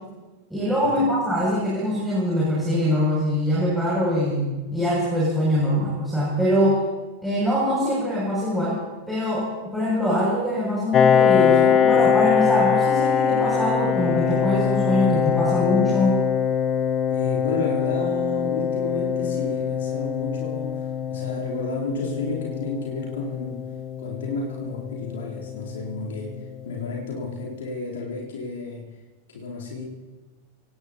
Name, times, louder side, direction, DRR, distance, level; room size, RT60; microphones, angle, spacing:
voice 1, 0.5-6.8 7.2-8.8 9.1-16.2, equal, ahead, -6 dB, 6.5 m, -23 dB
Piano, 10.9-26.3, left 7 dB, 25° left, 0.7 m, -23 dB
voice 2, 17.1-23.6 24.0-28.9 29.3-29.8, left 3 dB, 60° left, -3 dB, 3.3 m, -32 dB
25.5 x 18.5 x 2.8 m, 1.2 s
figure-of-eight pair, 90°, 0 cm